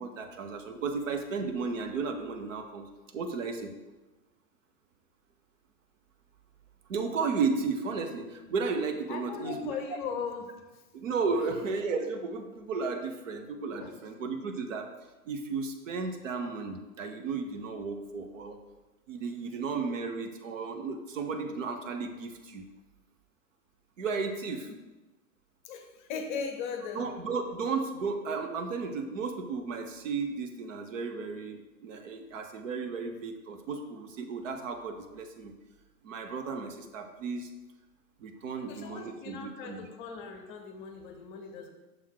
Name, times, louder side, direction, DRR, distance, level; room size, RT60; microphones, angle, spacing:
voice 1, 0.0-3.8 6.9-9.8 10.9-14.9 15.3-18.6 19.1-22.6 24.0-24.7 26.9-35.5 36.0-37.5 38.2-39.9, right 4 dB, 60° right, 6 dB, 0.8 m, -34 dB
voice 2, 9.1-10.8 13.8-14.0 24.7-24.8 25.7-27.2 38.7-41.7, left 5 dB, 35° left, 5 dB, 0.7 m, -38 dB
6.4 x 3.6 x 4.6 m, 1.1 s
figure-of-eight pair, 100°, 45 cm